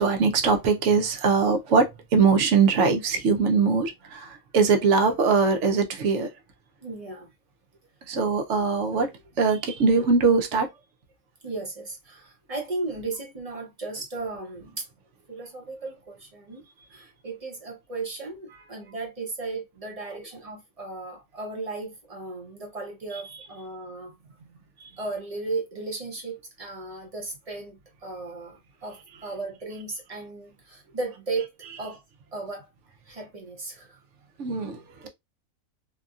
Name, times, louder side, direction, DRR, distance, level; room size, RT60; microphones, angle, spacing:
voice 1, 0.0-1.9 2.1-4.3 4.5-6.3 8.1-9.1 9.4-10.7 34.4-34.8, right 5 dB, 65° right, 0.9 m, -21 dB
voice 2, 6.8-7.3 11.4-14.8 15.3-16.6 16.9-24.1 25.0-31.5 31.8-32.0 32.3-32.7 33.1-34.0 35.0-35.1, right 3 dB, 35° right, 0.6 m, -35 dB
2.8 x 2.6 x 2.3 m
omnidirectional pair, 1.5 m